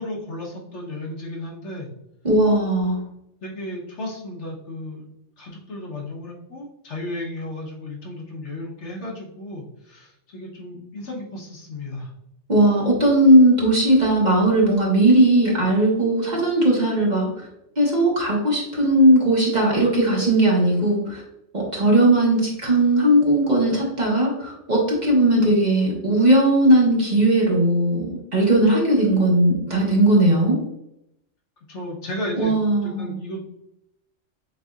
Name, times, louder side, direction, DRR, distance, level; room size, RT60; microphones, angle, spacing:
voice 1, 0.0-1.9 2.5-2.9 3.4-5.1 5.4-12.1 31.7-32.5 32.8-33.5, left 1 dB, 70° left, -2 dB, 1.4 m, -34 dB
voice 2, 2.2-3.0 12.5-17.5 17.8-21.2 21.5-28.1 28.3-30.6 32.4-33.1, right 1 dB, 35° right, -4 dB, 1.3 m, -18 dB
7.1 x 2.7 x 2.4 m, 0.83 s
omnidirectional pair, 1.3 m